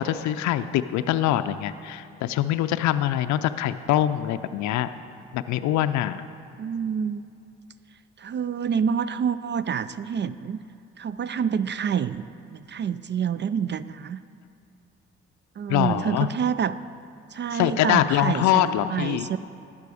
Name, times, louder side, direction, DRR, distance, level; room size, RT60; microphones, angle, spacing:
voice 1, 0.0-4.9 5.3-6.2 15.7-16.3 17.5-19.3, left 12 dB, 65° left, 11 dB, 0.5 m, -24 dB
voice 2, 6.6-7.2 8.2-10.6 11.0-12.2 12.5-14.2 15.6-16.8 17.3-19.4, right 7 dB, 35° right, 15 dB, 0.4 m, -27 dB
12.5 x 8.9 x 4.9 m, 2.6 s
hypercardioid pair, 50°, 31 cm